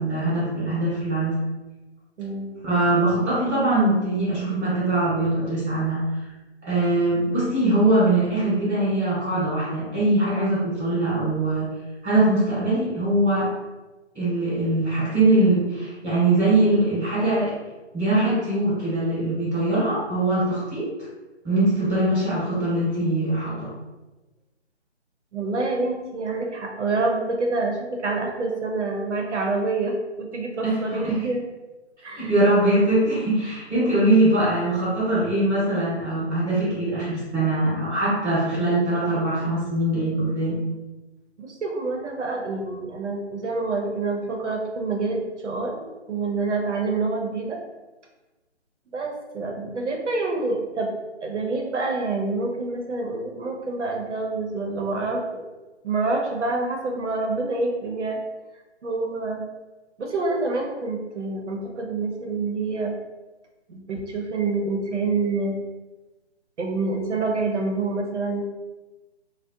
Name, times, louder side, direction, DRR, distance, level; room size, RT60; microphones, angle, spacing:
voice 1, 0.0-1.4 2.6-6.0 6.6-11.7 12.0-13.5 14.1-17.5 17.9-21.1 21.4-23.7 30.6-31.2 32.2-40.6, right 2 dB, 5° right, -27 dB, 0.6 m, -22 dB
voice 2, 2.2-2.5 25.3-31.4 32.0-32.3 41.4-45.7 46.1-47.6 48.9-50.9 51.2-55.4 55.8-58.2 58.8-59.5 60.0-62.9 63.7-65.6 66.6-68.4, right 3 dB, 80° right, 1 dB, 0.7 m, -27 dB
2.5 x 2.0 x 2.5 m, 1.1 s
hypercardioid pair, 165°, 34 cm